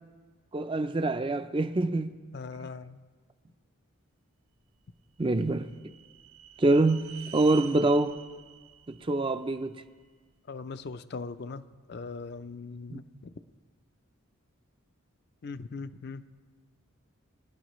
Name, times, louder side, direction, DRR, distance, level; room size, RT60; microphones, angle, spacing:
voice 1, 0.5-2.1 5.2-5.7 6.6-8.2 8.9-9.8 12.9-13.0, right 2 dB, 25° right, 0.4 m, -25 dB
voice 2, 2.3-3.0 10.5-11.6 11.9-13.0 15.4-16.2, left 4 dB, 50° left, 0.5 m, -39 dB
sound 1, 4.9-10.1, right 9 dB, 80° right, 0.9 m, -48 dB
26.0 x 11.0 x 3.1 m
head